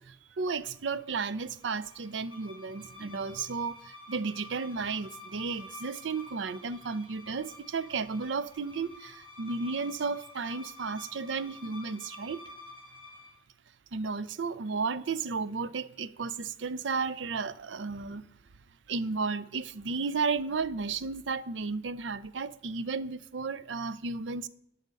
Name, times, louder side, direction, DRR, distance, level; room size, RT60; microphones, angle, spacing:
voice 1, 0.0-12.4 13.9-18.3 18.9-24.5, right 4 dB, 75° right, 0.5 m, -33 dB
sound 1, 0.7-13.4, left 2 dB, 30° right, 2.5 m, -50 dB
11.5 x 6.6 x 5.2 m
head